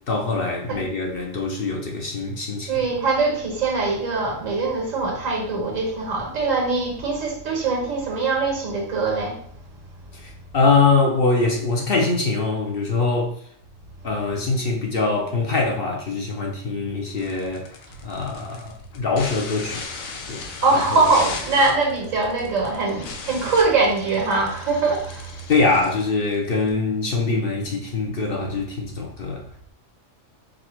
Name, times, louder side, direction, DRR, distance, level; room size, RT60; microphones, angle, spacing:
voice 1, 0.1-2.7 10.5-13.3 14.0-17.6 18.0-19.8 20.3-20.4 20.9-21.0 25.5-29.4, left 3 dB, 50° left, 0.8 m, -23 dB
voice 2, 2.7-9.4 20.6-25.4, right 3 dB, 75° right, 1.6 m, -22 dB
sound 1, 17.2-26.7, left 4 dB, 85° left, 1.2 m, -37 dB
5.1 x 2.3 x 4.3 m
omnidirectional pair, 1.4 m